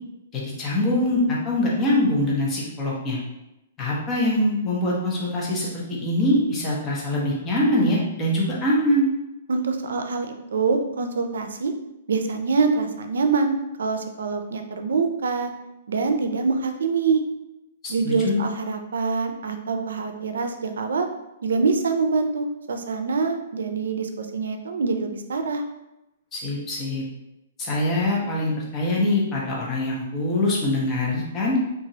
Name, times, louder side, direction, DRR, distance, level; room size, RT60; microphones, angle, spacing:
voice 1, 0.3-3.2 3.8-9.1 17.8-18.4 26.3-27.0 27.6-31.6, left 1 dB, 20° left, -4 dB, 0.7 m, -23 dB
voice 2, 9.5-11.7 12.1-13.5 13.8-15.5 15.9-17.2 17.9-21.1 21.4-25.6, right 4 dB, 90° right, 6 dB, 0.4 m, -25 dB
2.9 x 2.4 x 2.7 m, 0.91 s
hypercardioid pair, 160°, 0 cm